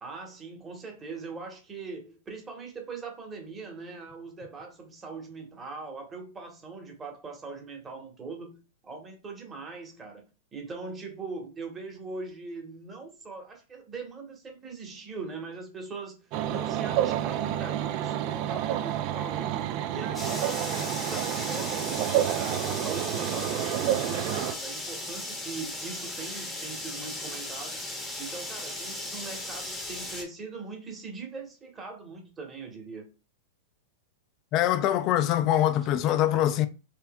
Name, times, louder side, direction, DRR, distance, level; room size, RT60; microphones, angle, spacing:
voice 1, 0.0-10.2 10.5-19.6 19.9-27.8 28.2-33.1, right 4 dB, 20° right, 1.2 m, -41 dB
sound 1, 16.3-24.5, right 11 dB, 45° right, 0.3 m, -29 dB
sound 2, 20.1-30.2, left 1 dB, 10° left, 0.9 m, -37 dB
voice 2, 34.5-36.7, left 12 dB, 40° left, 0.4 m, -23 dB
4.4 x 2.6 x 2.2 m
hypercardioid pair, 110°, 0 cm